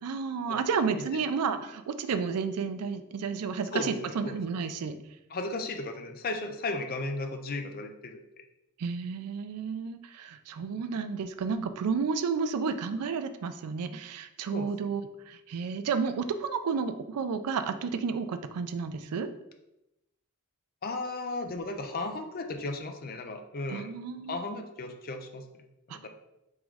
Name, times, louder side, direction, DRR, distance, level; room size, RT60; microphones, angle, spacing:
voice 1, 0.0-5.0 8.8-19.3 23.7-24.4 25.9-26.0, right 5 dB, 90° right, 10 dB, 0.4 m, -31 dB
voice 2, 3.7-4.4 5.3-8.2 14.5-14.7 20.8-23.9 24.3-25.4 25.9-26.1, left 2 dB, 40° left, 6 dB, 0.5 m, -35 dB
3.6 x 3.0 x 4.8 m, 0.90 s
head